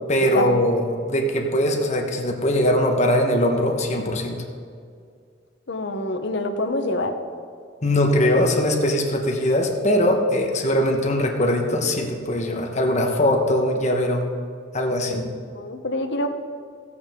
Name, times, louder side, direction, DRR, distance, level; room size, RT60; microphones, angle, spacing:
voice 1, 0.1-4.4 7.8-14.2 14.7-15.3, left 1 dB, 40° left, 2 dB, 1.2 m, -21 dB
voice 2, 5.7-7.1 15.1-15.2 15.5-16.3, left 2 dB, 65° left, 6 dB, 0.9 m, -26 dB
15.0 x 8.6 x 3.7 m, 2.2 s
head